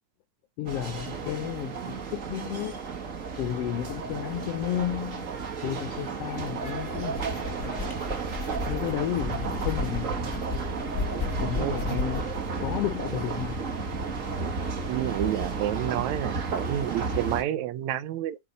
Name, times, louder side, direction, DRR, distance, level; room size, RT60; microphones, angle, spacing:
voice 1, 0.6-2.8 3.4-5.3 5.6-7.8 8.7-10.3 11.4-12.3 12.6-13.6, left 12 dB, 90° left, 1.3 m, -32 dB
sound 1, 0.6-17.4, right 4 dB, 55° right, 0.9 m, -33 dB
sound 2, 6.3-12.4, left 5 dB, 60° left, 0.8 m, -35 dB
voice 2, 11.5-12.0 14.9-18.4, right 12 dB, 75° right, 1.9 m, -30 dB
8.5 x 4.4 x 4.0 m
omnidirectional pair, 3.5 m